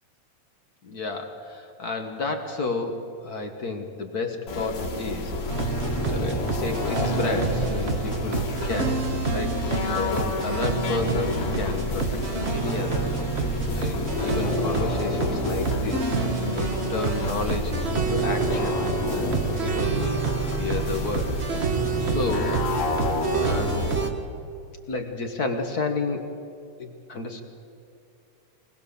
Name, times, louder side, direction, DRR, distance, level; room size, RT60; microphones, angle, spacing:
voice 1, 0.8-5.3 6.0-9.5 9.9-13.2 13.7-16.1 16.6-21.4 22.0-22.6 23.3-24.2 24.5-26.2 26.8-27.4, left 3 dB, 50° left, 5 dB, 1.2 m, -31 dB
sound 1, 4.5-24.1, left 2 dB, 70° left, 3.2 m, -29 dB
sound 2, 5.5-24.1, right 5 dB, 85° right, 0.5 m, -28 dB
23.0 x 20.5 x 7.0 m, 2.6 s
omnidirectional pair, 3.4 m